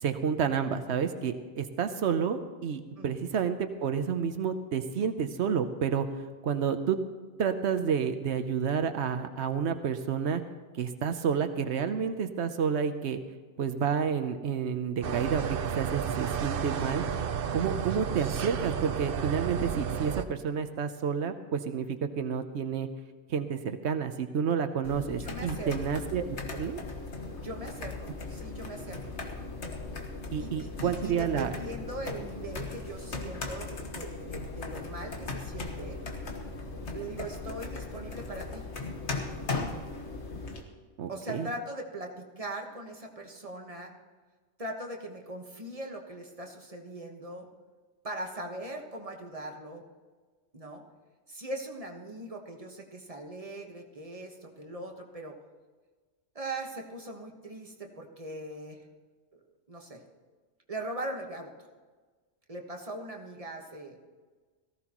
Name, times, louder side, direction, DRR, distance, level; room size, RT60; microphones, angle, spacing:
voice 1, 0.0-6.1 6.4-7.0 7.4-10.4 10.7-13.2 13.6-17.0 17.5-22.9 23.3-26.3 26.5-26.8 30.3-31.5 41.0-41.5, right 7 dB, 85° right, 8 dB, 1.0 m, -30 dB
sound 1, 15.0-20.3, right 7 dB, 60° right, 0.8 m, -32 dB
sound 2, 24.8-40.6, left 3 dB, 90° left, 1.7 m, -38 dB
voice 2, 25.2-25.9 27.4-29.1 30.4-36.0 36.9-38.6 41.1-43.9 44.6-47.5 48.0-49.8 50.5-50.8 51.3-55.4 56.3-58.9 59.3-59.4 59.7-60.0 60.7-61.5 62.5-64.0, right 1 dB, 35° right, 2 dB, 1.5 m, -40 dB
18.0 x 15.0 x 3.0 m, 1.4 s
omnidirectional pair, 1.1 m